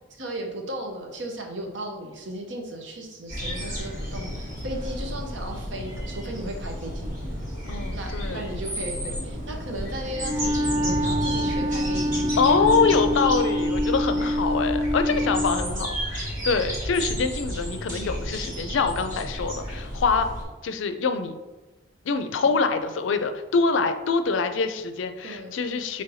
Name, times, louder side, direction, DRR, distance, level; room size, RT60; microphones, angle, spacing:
voice 1, 0.1-7.1 7.9-12.4 15.1-15.8 17.0-17.2 25.2-25.6, right 1 dB, 70° right, 2 dB, 0.7 m, -36 dB
sound 1, 3.3-20.4, equal, 40° right, 1.5 m, -32 dB
voice 2, 7.7-8.4 12.4-20.3 20.6-21.3 22.0-26.0, left 4 dB, 75° left, 8 dB, 0.4 m, -25 dB
Wind instrument woodwind instrument, 10.2-15.6, equal, 20° right, 0.4 m, -26 dB
5.5 x 3.2 x 2.7 m, 1.1 s
head